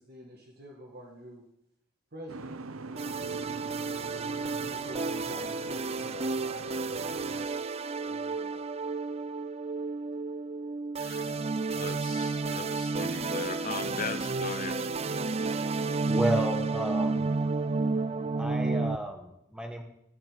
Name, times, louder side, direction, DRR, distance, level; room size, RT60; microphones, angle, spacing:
voice 1, 0.0-1.4 2.1-3.3 4.6-7.3 8.0-8.7, equal, 50° right, -1 dB, 2.0 m, -47 dB
Boat Water vehicle, 2.3-7.5, right 3 dB, 80° right, 0.8 m, -43 dB
sound 1, 3.0-19.0, right 3 dB, 30° right, 0.5 m, -31 dB
voice 2, 11.0-14.9, left 5 dB, 40° left, 12 dB, 0.8 m, -39 dB
voice 3, 16.1-17.3 18.4-19.8, equal, 5° right, 4 dB, 1.7 m, -32 dB
15.0 x 6.9 x 9.0 m, 0.80 s
head